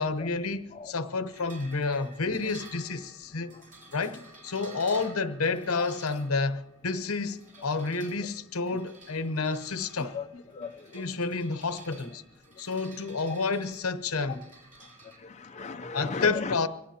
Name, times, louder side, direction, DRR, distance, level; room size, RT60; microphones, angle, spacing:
voice 1, 0.0-3.5 3.9-10.2 10.9-12.2 12.6-14.5 15.9-16.7, left 4 dB, 80° left, 0.9 m, -30 dB
sound 1, 1.3-15.2, right 2 dB, 40° right, 4.4 m, -52 dB
voice 2, 10.1-11.0 14.3-14.4 15.2-16.7, left 4 dB, 35° left, 0.6 m, -37 dB
25.0 x 18.0 x 2.9 m
head